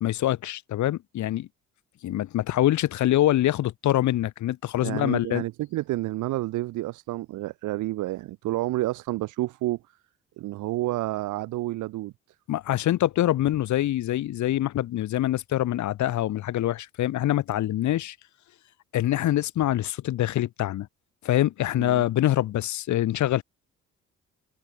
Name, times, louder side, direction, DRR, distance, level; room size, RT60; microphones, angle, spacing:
voice 1, 0.0-1.5 2.0-5.4 12.5-18.2 18.9-20.9 21.2-23.4, left 13 dB, 70° left, 1.1 m, -25 dB
voice 2, 4.8-9.8 10.4-12.1 21.8-22.1, right 17 dB, 80° right, 0.6 m, -29 dB
cardioid pair, 90°, 30 cm